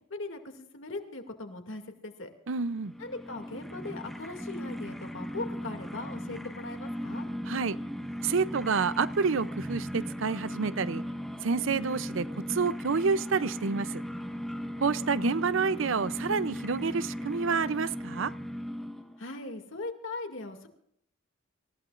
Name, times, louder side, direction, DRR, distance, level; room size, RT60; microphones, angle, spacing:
voice 1, 0.1-2.3 3.0-7.3 19.2-20.7, left 2 dB, 65° left, 2.4 m, -39 dB
voice 2, 2.5-2.9 7.5-7.8 8.2-11.0 11.4-13.9 14.8-18.3, right 5 dB, 70° right, 0.6 m, -28 dB
sound 1, 2.6-19.3, equal, ahead, 1.2 m, -37 dB
27.0 x 15.5 x 2.5 m
head